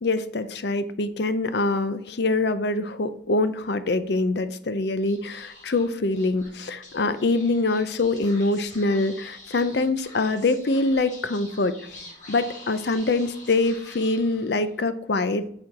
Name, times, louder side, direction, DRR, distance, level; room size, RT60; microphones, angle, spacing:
voice 1, 0.0-11.8 12.3-15.5, left 2 dB, 60° left, 12 dB, 0.6 m, -24 dB
Speech / Whispering, 5.0-14.8, left 2 dB, 40° left, 2.0 m, -46 dB
8.7 x 4.4 x 4.1 m, 0.68 s
head